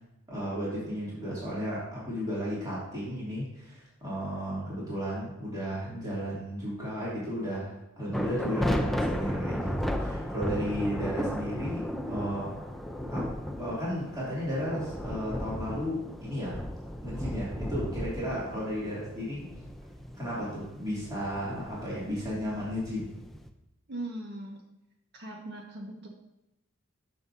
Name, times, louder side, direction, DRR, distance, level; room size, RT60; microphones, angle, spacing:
voice 1, 0.3-12.5 13.1-13.3 13.6-16.6 17.0-19.5 20.1-23.1, equal, 20° right, -8 dB, 2.8 m, -34 dB
sound 1, 8.1-23.5, equal, ahead, 0.5 m, -35 dB
voice 2, 18.3-18.7 23.9-24.6 25.1-26.1, right 1 dB, 55° right, 1 dB, 1.5 m, -40 dB
11.5 x 6.0 x 2.7 m, 0.92 s
head